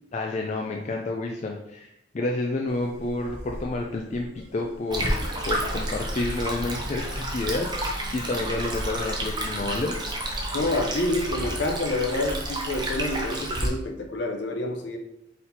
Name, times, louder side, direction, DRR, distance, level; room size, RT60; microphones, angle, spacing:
voice 1, 0.1-9.9, left 2 dB, 35° left, 1 dB, 0.3 m, -30 dB
sound 1, 2.7-10.9, equal, 65° right, 1.2 m, -40 dB
Stream, 4.9-13.7, right 1 dB, 20° right, 0.6 m, -30 dB
voice 2, 10.5-15.0, left 2 dB, 60° left, 3 dB, 0.7 m, -28 dB
4.2 x 4.1 x 2.7 m, 0.79 s
head